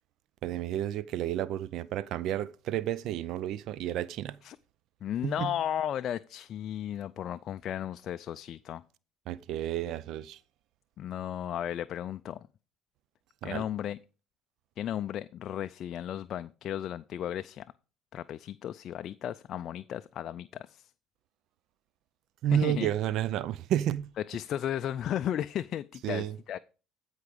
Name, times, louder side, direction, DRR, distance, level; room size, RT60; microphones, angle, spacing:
voice 1, 0.4-4.4 5.2-5.5 9.3-10.4 13.4-13.6 22.4-24.1 26.0-26.4, right 11 dB, 65° right, 0.5 m, -31 dB
voice 2, 5.0-8.8 11.0-12.4 13.4-14.0 14.8-17.7 18.1-20.9 22.5-22.9 24.3-26.6, left 10 dB, 50° left, 0.4 m, -35 dB
14.5 x 4.8 x 5.1 m
cardioid pair, 110°, 0 cm